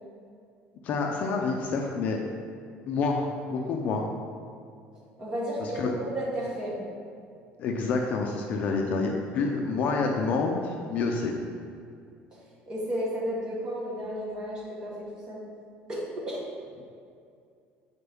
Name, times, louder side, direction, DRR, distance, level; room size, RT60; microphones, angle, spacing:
voice 1, 0.8-2.2 2.9-4.1 5.6-5.9 7.6-11.3, left 4 dB, 45° left, 1 dB, 0.5 m, -28 dB
voice 2, 5.2-6.8 12.7-15.4 15.9-16.0 16.3-16.4, equal, 20° right, -6 dB, 1.6 m, -32 dB
8.2 x 4.4 x 3.5 m, 2.3 s
cardioid pair, 165°, 4 cm